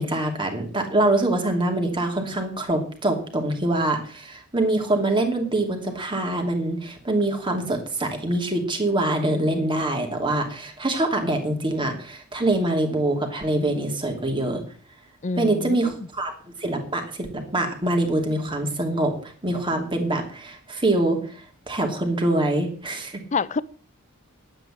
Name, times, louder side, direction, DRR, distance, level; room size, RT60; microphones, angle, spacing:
voice 1, 0.0-14.6 15.4-16.3 16.6-23.2, right 1 dB, 20° right, 2.6 m, -24 dB
voice 2, 15.2-16.1 23.3-23.6, left 4 dB, 30° left, 0.5 m, -27 dB
11.0 x 9.0 x 7.4 m
head